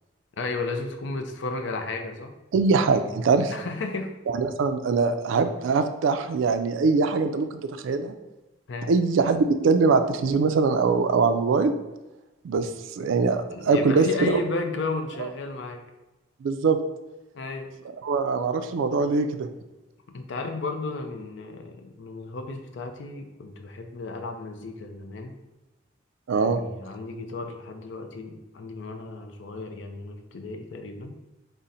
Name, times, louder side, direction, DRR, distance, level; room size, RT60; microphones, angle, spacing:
voice 1, 0.4-2.3 3.5-4.1 8.7-8.9 13.5-15.8 17.3-17.7 20.1-25.3 26.3-31.2, left 3 dB, 65° left, 5 dB, 0.4 m, -33 dB
voice 2, 2.5-3.5 4.3-8.1 8.9-11.7 12.4-12.7 13.0-14.4 16.4-16.8 18.0-19.5 26.3-26.6, right 4 dB, 75° right, 9 dB, 0.3 m, -22 dB
3.8 x 2.1 x 4.1 m, 1.0 s
head